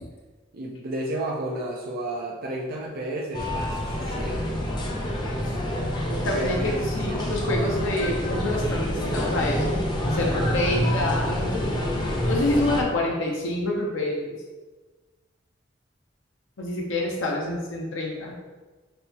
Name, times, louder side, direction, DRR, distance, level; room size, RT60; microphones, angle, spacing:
voice 1, 0.5-4.6 6.3-7.4, right 1 dB, 50° right, -1 dB, 0.5 m, -32 dB
sound 1, 3.3-12.8, left 1 dB, 25° left, 0.6 m, -27 dB
voice 2, 6.0-9.8 10.0-11.6 12.2-14.4 16.6-18.3, left 1 dB, 90° left, -1 dB, 0.7 m, -27 dB
5.4 x 2.7 x 2.8 m, 1.3 s
head